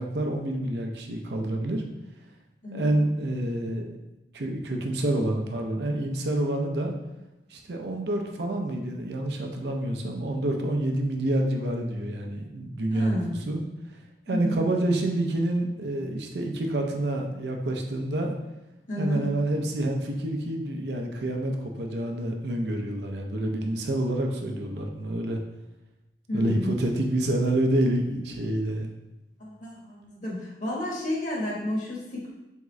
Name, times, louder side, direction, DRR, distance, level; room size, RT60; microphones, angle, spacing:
voice 1, 0.0-1.8 2.7-3.9 4.3-6.9 7.5-13.2 13.5-13.6 14.3-18.3 19.0-25.4 26.3-28.9, right 1 dB, 65° right, 3 dB, 0.5 m, -28 dB
voice 2, 12.9-13.3 14.3-14.6 18.9-19.2 26.3-26.7 29.4-32.3, left 1 dB, 45° left, -4 dB, 1.2 m, -31 dB
3.6 x 3.6 x 3.1 m, 0.99 s
head